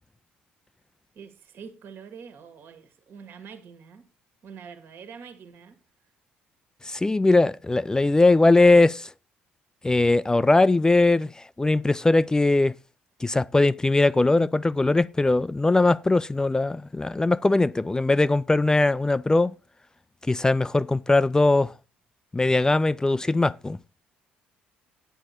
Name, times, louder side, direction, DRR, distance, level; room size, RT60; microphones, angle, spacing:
voice 1, 1.1-4.1 4.4-5.8, right 6 dB, 55° right, 1.7 m, -45 dB
voice 2, 6.8-9.1 9.8-12.7 13.2-19.5 20.3-21.7 22.3-23.8, left 2 dB, 15° left, 0.4 m, -20 dB
10.0 x 7.8 x 4.2 m
figure-of-eight pair, 50°, 5 cm